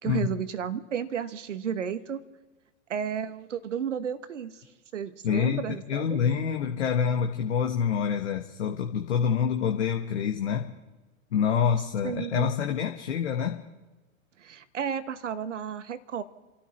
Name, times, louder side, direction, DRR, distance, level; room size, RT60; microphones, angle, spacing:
voice 1, 0.0-2.2 2.9-4.6 4.9-6.2 12.0-12.5 14.4-16.2, right 8 dB, 70° right, 13 dB, 1.3 m, -33 dB
voice 2, 5.2-10.7 11.3-13.6, left 7 dB, 60° left, 4 dB, 1.4 m, -27 dB
30.0 x 13.0 x 3.1 m, 1.2 s
figure-of-eight pair, 95°, 38 cm